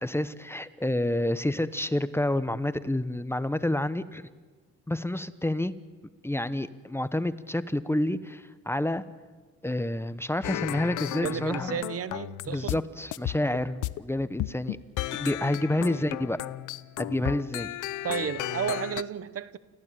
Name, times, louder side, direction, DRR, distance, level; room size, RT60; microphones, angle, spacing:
voice 1, 0.0-4.3 4.9-5.7 6.2-9.0 9.6-11.8 12.5-14.8 15.1-16.5 17.0-17.7, left 1 dB, 10° left, 1.0 m, -29 dB
sound 1, 10.4-12.8 13.1-14.0 14.4-19.0, left 16 dB, 85° left, 0.7 m, -34 dB
voice 2, 11.1-12.8 15.9-16.1 18.0-19.6, right 8 dB, 50° right, 1.0 m, -33 dB
29.5 x 15.0 x 8.9 m
cardioid pair, 90°, 30 cm